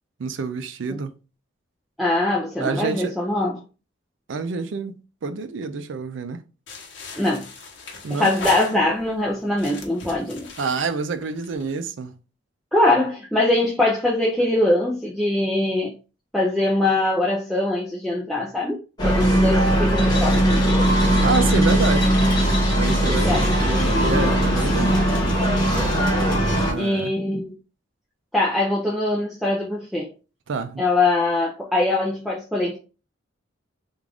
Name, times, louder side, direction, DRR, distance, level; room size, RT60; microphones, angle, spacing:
voice 1, 0.2-1.1 2.6-3.1 4.3-6.4 8.0-8.3 10.6-12.1 21.0-22.1 22.7-23.4 24.0-25.0 26.5-27.1 30.5-30.8, right 4 dB, 75° right, 0.4 m, -27 dB
voice 2, 2.0-3.6 7.1-7.5 8.2-10.5 12.7-15.9 16.3-20.9 23.1-23.5 26.8-27.5 28.3-30.1 30.8-32.8, left 2 dB, ahead, 0.5 m, -22 dB
sound 1, 6.7-9.1 9.5-11.8, left 4 dB, 70° left, 0.8 m, -38 dB
sound 2, 19.0-26.7, right 1 dB, 20° left, 1.1 m, -19 dB
3.6 x 2.4 x 3.4 m
head